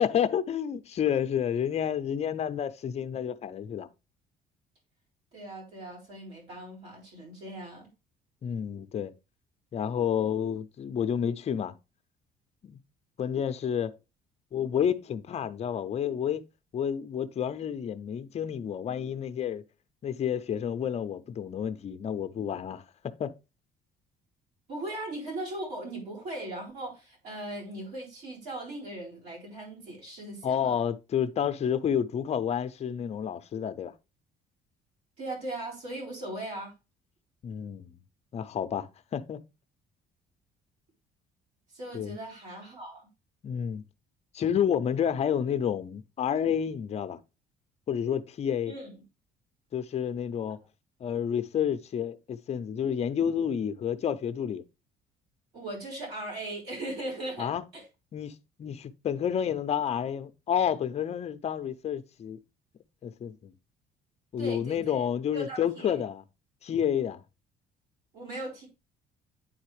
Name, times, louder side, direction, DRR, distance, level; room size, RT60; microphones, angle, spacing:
voice 1, 0.0-3.9 8.4-9.1 9.7-11.7 12.6-12.8 13.2-13.9 14.5-16.4 16.7-19.6 20.0-23.3 30.4-33.9 37.4-38.0 38.3-39.4 41.9-42.2 43.4-43.8 44.3-47.2 47.9-48.7 49.7-50.6 51.0-54.6 57.4-57.6 58.1-62.4 63.0-63.5 64.3-66.2 66.6-67.2, left 8 dB, 40° left, 0.6 m, -30 dB
voice 2, 5.3-7.9 24.7-30.7 35.2-36.7 41.7-43.1 48.7-48.9 55.5-57.8 64.4-65.0 65.3-65.9 68.1-68.7, right 1 dB, 75° right, 4.1 m, -39 dB
9.1 x 4.0 x 3.2 m
cardioid pair, 110°, 17 cm